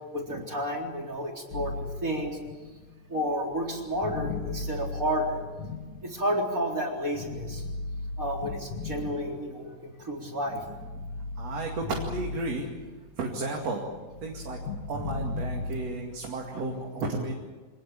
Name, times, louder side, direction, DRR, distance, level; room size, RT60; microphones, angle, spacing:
voice 1, 0.1-2.4 3.1-5.4 6.0-7.6 8.2-10.6, equal, 25° right, 0 dB, 4.2 m, -31 dB
sound 1, 1.5-6.6 7.1-9.8 10.3-13.1 13.4-16.1, left 3 dB, 60° left, 3.3 m, -37 dB
voice 2, 11.4-12.7 13.2-13.8 14.2-14.6 14.9-17.3, right 3 dB, 50° right, 0 dB, 3.4 m, -33 dB
26.0 x 19.5 x 8.6 m, 1.3 s
omnidirectional pair, 3.7 m